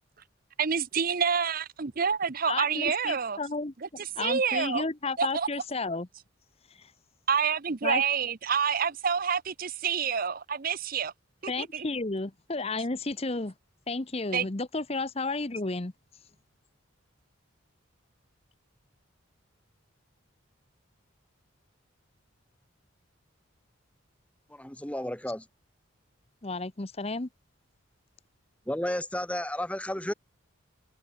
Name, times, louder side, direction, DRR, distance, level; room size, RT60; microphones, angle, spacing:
voice 1, 0.6-3.4 3.8-4.8 5.2-5.5 7.3-11.1 11.4-11.9 14.3-14.5, right 6 dB, 45° right, 0.7 m, -28 dB
voice 2, 2.5-3.7 4.2-6.1 7.8-8.0 11.5-13.5 13.9-15.9 26.4-27.3, left 3 dB, 30° left, 0.9 m, -32 dB
voice 3, 24.5-25.4 28.7-30.1, left 1 dB, 5° left, 1.3 m, -32 dB
head